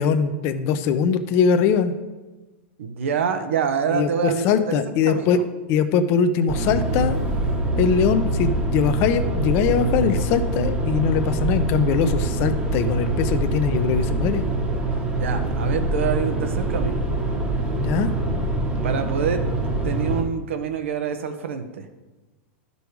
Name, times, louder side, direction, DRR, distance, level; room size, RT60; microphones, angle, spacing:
voice 1, 0.0-1.9 3.9-5.4 5.7-7.2 7.8-14.5 17.8-18.1, left 7 dB, 40° left, 9 dB, 0.7 m, -21 dB
voice 2, 2.8-5.4 15.2-17.0 18.8-19.5 19.8-21.9, right 7 dB, 85° right, 8 dB, 1.0 m, -26 dB
sound 1, 6.5-20.2, right 2 dB, 15° right, 1.1 m, -24 dB
11.5 x 5.4 x 4.7 m, 1.2 s
supercardioid pair, 150°, 7 cm